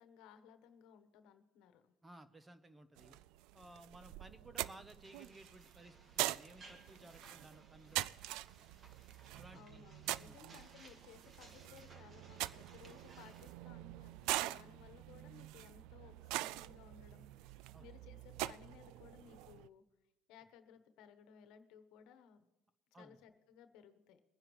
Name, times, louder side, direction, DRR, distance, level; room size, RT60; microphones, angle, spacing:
voice 1, 0.0-1.9 9.5-19.8 20.3-22.5 22.9-24.2, left 8 dB, 70° left, 9 dB, 1.2 m, -60 dB
voice 2, 2.0-3.2 3.5-8.2 9.3-9.8 10.2-10.4 17.7-17.9 22.9-23.2, right 1 dB, 15° right, 11 dB, 1.0 m, -58 dB
sound 1, 3.0-19.7, right 16 dB, 70° right, 0.3 m, -44 dB
sound 2, 5.0-13.5, right 2 dB, 35° right, 2.0 m, -62 dB
23.0 x 10.0 x 3.2 m, 1.0 s
supercardioid pair, 105°, 0 cm